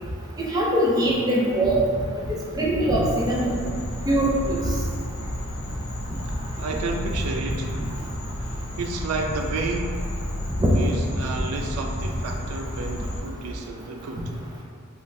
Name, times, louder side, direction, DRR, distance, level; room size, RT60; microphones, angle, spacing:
voice 1, 0.4-1.8 2.5-3.6 4.0-4.6 10.6-10.7, right 1 dB, 15° right, -4 dB, 0.4 m, -22 dB
sound 1, 3.0-13.2, left 1 dB, 70° left, 0.5 m, -32 dB
voice 2, 6.2-7.7 8.4-10.1 10.7-14.3, right 3 dB, 90° right, 3 dB, 0.3 m, -31 dB
3.1 x 2.3 x 2.5 m, 2.1 s
head